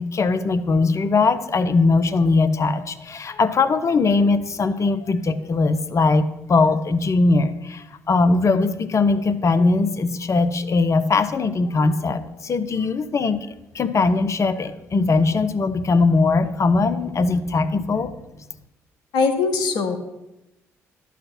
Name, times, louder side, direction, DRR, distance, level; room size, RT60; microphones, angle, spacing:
voice 1, 0.0-13.4 13.7-18.2, left 3 dB, 40° left, 12 dB, 0.9 m, -20 dB
voice 2, 19.1-20.0, left 4 dB, 70° left, 8 dB, 1.5 m, -21 dB
12.5 x 6.0 x 5.9 m, 0.93 s
hypercardioid pair, 45°, 8 cm